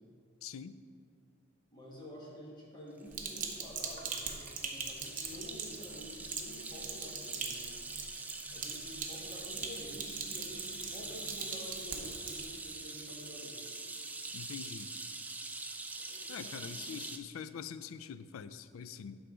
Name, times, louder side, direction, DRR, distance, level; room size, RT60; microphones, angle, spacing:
voice 1, 0.4-0.8 14.3-14.9 16.3-19.2, left 7 dB, 90° left, 13 dB, 0.4 m, -44 dB
voice 2, 1.7-7.8 8.5-13.6 16.0-17.0, left 1 dB, 20° left, -4 dB, 1.5 m, -49 dB
sound 1, 3.0-17.2, right 3 dB, 10° right, 0.3 m, -44 dB
Sink (filling or washing), 3.1-12.4, right 6 dB, 40° right, 0.8 m, -42 dB
11.5 x 3.8 x 4.9 m, 2.1 s
head